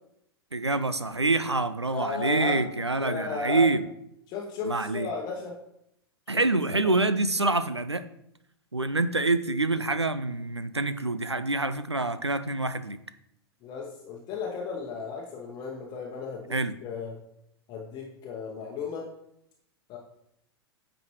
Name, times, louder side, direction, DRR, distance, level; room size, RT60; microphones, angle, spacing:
voice 1, 0.5-3.8 4.6-5.1 6.3-8.0 8.7-13.0 16.5-16.7, right 2 dB, 90° right, 12 dB, 0.5 m, -26 dB
voice 2, 1.9-2.6 3.0-3.7 4.3-5.6 6.3-6.4 6.8-6.9 13.6-17.2 17.7-19.1 19.9-20.0, left 4 dB, 30° left, 0 dB, 1.0 m, -34 dB
9.1 x 5.0 x 3.1 m, 0.77 s
figure-of-eight pair, 95°, 14 cm